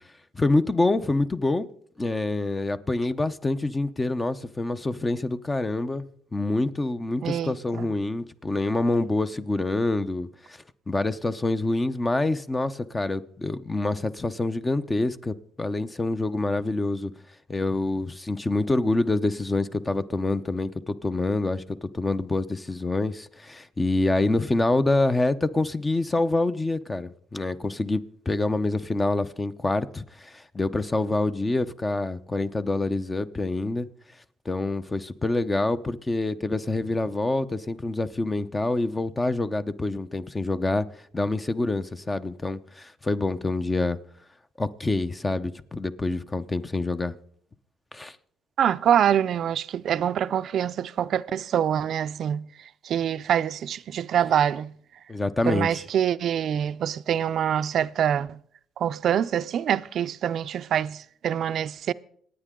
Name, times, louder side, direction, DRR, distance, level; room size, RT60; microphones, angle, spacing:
voice 1, 0.3-1.7 2.0-10.6 10.9-17.1 17.5-33.9 34.4-40.8 41.1-44.0 44.6-47.2 47.9-48.2 55.1-55.8, left 2 dB, 20° left, 0.8 m, -26 dB
voice 2, 7.2-7.9 48.6-52.5 52.8-54.7 55.5-58.4 58.8-61.9, right 9 dB, 60° right, 0.5 m, -25 dB
26.5 x 9.2 x 3.7 m
cardioid pair, 95°, 0 cm